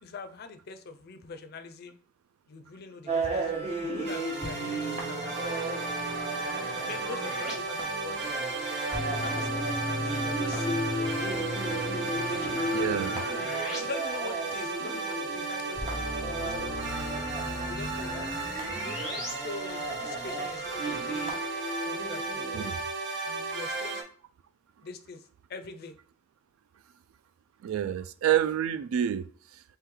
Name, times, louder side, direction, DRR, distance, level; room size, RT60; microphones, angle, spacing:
voice 1, 0.0-2.0 2.5-5.4 6.5-8.2 8.9-11.4 12.1-13.5 13.8-16.9 17.7-18.6 19.4-21.4 21.9-22.6 23.3-24.0 24.8-25.2 25.5-25.9, left 4 dB, 50° left, 0.4 m, -43 dB
sound 1, 3.1-22.7, right 2 dB, 30° right, 0.9 m, -36 dB
sound 2, 4.0-24.0, right 3 dB, 60° right, 0.7 m, -35 dB
sound 3, 4.4-7.5 8.9-13.8 14.1-14.2 15.8-19.3, left 1 dB, ahead, 1.1 m, -37 dB
voice 2, 12.7-13.2 22.5-22.8 27.6-29.6, right 10 dB, 90° right, 0.3 m, -28 dB
3.1 x 3.0 x 3.7 m
head